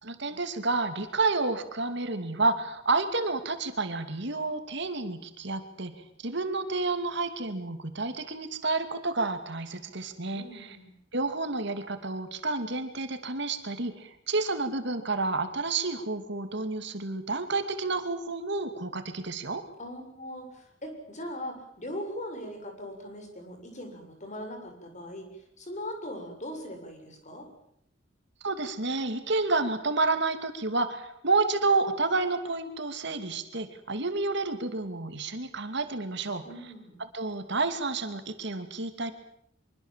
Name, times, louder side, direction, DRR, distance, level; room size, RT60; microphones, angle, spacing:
voice 1, 0.0-10.8 11.1-19.6 28.4-36.5 37.0-39.1, right 3 dB, 65° right, 8 dB, 2.7 m, -30 dB
voice 2, 10.3-10.9 19.8-25.3 25.6-27.5 36.4-37.0, left 1 dB, 40° left, 4 dB, 6.9 m, -40 dB
25.0 x 24.0 x 7.6 m, 0.72 s
head